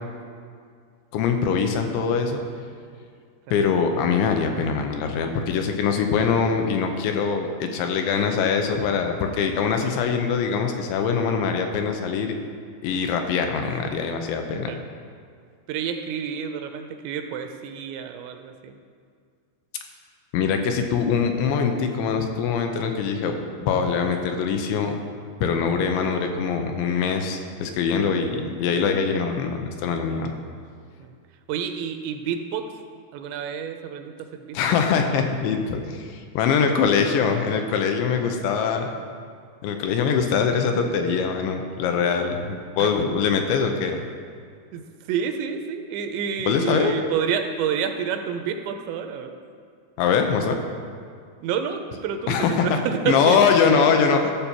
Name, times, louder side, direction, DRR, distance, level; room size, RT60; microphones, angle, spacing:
voice 1, 1.1-2.4 3.5-12.4 12.8-14.7 20.3-23.3 23.6-25.0 25.4-30.3 34.5-38.9 39.6-44.0 46.4-47.0 50.0-50.6 52.3-52.8 53.1-54.3, left 6 dB, 85° left, 4 dB, 2.9 m, -23 dB
voice 2, 15.7-18.8 31.0-31.1 31.5-32.6 33.1-34.6 36.7-36.8 42.8-42.9 44.7-44.8 45.1-49.4 51.4-52.4 52.6-53.8, right 7 dB, 80° right, 6 dB, 2.7 m, -29 dB
14.0 x 6.7 x 4.4 m, 2.2 s
omnidirectional pair, 5.3 m